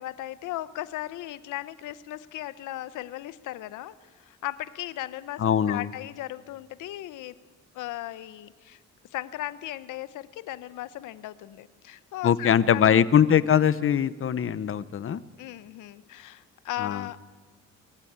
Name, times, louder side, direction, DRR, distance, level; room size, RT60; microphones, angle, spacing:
voice 1, 0.0-7.4 7.7-8.8 9.1-12.9 15.4-17.2, left 14 dB, 90° left, 16 dB, 0.9 m, -37 dB
voice 2, 5.4-5.9 12.2-15.2 16.8-17.0, left 9 dB, 45° left, 16 dB, 0.9 m, -22 dB
22.5 x 15.5 x 8.8 m, 1.4 s
cardioid pair, 90°, 30 cm